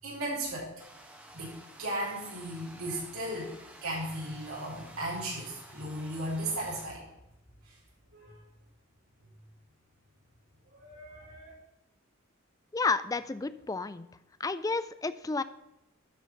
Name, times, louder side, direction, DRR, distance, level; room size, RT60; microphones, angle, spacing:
voice 1, 0.0-0.7 1.3-3.6 3.8-7.0 7.6-7.8 8.1-8.4 10.7-11.5, right 1 dB, 90° right, -4 dB, 4.2 m, -36 dB
sound 1, 0.8-6.9, right 1 dB, 5° right, 1.3 m, -52 dB
voice 2, 12.7-14.1 14.4-15.4, left 3 dB, 15° left, 14 dB, 0.3 m, -31 dB
12.0 x 4.8 x 5.9 m, 0.92 s
head